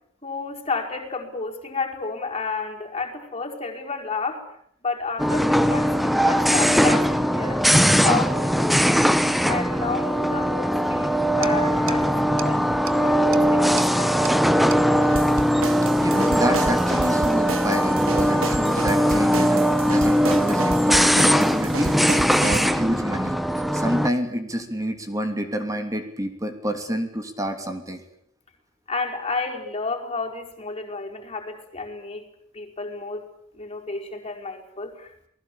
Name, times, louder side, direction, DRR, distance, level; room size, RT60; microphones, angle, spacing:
voice 1, 0.2-4.4 4.8-7.6 8.0-9.0 9.4-12.7 13.0-14.2 28.9-32.3 32.5-33.2 33.5-35.3, left 4 dB, 30° left, 0 dB, 5.1 m, -31 dB
sound 1, 5.2-24.1, equal, ahead, 1.0 m, -20 dB
sound 2, 8.1-8.2 8.5-8.6 11.4-11.5 11.9-12.0 12.4-12.5 12.9-13.0 13.3-13.4 13.8-13.9 14.3-14.4 14.7-14.8 15.0-22.7, right 3 dB, 80° right, 1.6 m, -33 dB
voice 2, 16.0-22.1 22.4-23.4 23.7-28.0, equal, 15° right, 7 dB, 3.0 m, -28 dB
29.0 x 20.0 x 8.7 m, 0.68 s
head